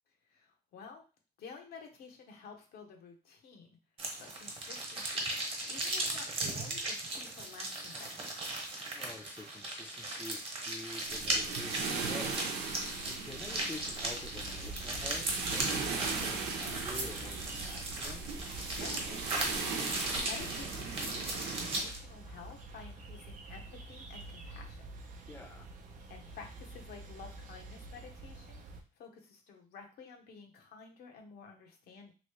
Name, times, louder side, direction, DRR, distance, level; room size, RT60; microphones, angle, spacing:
voice 1, 0.3-1.0 1.4-3.8 4.2-5.3 5.7-8.5 18.8-24.9 26.1-28.6 28.9-32.1, left 5 dB, 65° left, 2 dB, 0.9 m, -52 dB
sound 1, 4.0-22.0, right 2 dB, 30° right, 1.2 m, -37 dB
voice 2, 8.8-12.4 13.0-18.2 25.3-25.7, left 2 dB, 10° left, 1 dB, 0.6 m, -48 dB
sound 2, 11.1-21.8, right 4 dB, 85° right, 0.8 m, -38 dB
sound 3, 14.3-28.8, right 2 dB, 50° right, 0.6 m, -48 dB
3.0 x 2.7 x 3.1 m, 0.34 s
cardioid pair, 110°, 17 cm